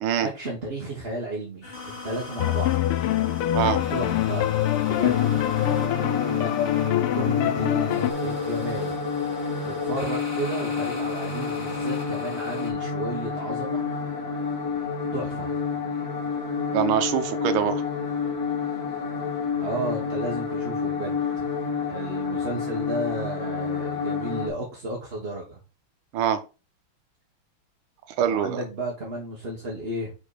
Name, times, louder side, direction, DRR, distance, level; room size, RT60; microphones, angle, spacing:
voice 1, 0.2-1.7 2.0-2.8 3.9-4.5 4.8-5.3 6.3-6.6 7.1-9.0 9.6-13.8 15.1-15.5 19.6-21.2 21.9-25.6 28.3-30.1, right 1 dB, 35° right, 1.3 m, -33 dB
sound 1, 1.6-12.7, left 3 dB, 25° left, 2.4 m, -38 dB
sound 2, 2.4-8.1, left 13 dB, 85° left, 1.5 m, -24 dB
sound 3, 5.1-24.5, left 5 dB, 45° left, 1.7 m, -29 dB
voice 2, 16.7-17.8 26.1-26.4 28.2-28.6, right 9 dB, 75° right, 1.7 m, -24 dB
5.6 x 4.9 x 4.9 m
omnidirectional pair, 2.4 m